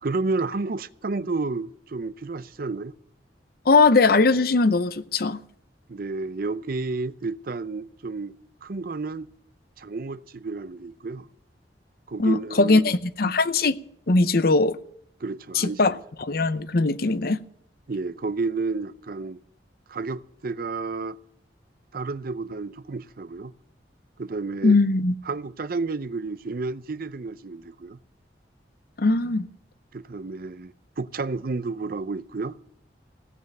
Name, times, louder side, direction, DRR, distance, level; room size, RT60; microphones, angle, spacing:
voice 1, 0.0-2.9 5.9-8.3 8.6-9.3 9.8-11.3 12.1-12.9 15.2-15.8 17.9-19.4 19.9-21.2 21.9-23.5 24.2-24.8 25.3-28.0 29.9-32.6, right 3 dB, 55° right, 0.6 m, -31 dB
voice 2, 3.7-5.4 12.2-13.8 14.1-14.8 15.5-15.9 16.2-17.4 24.6-25.1 29.0-29.5, left 3 dB, 55° left, 0.7 m, -20 dB
16.5 x 8.2 x 9.0 m
head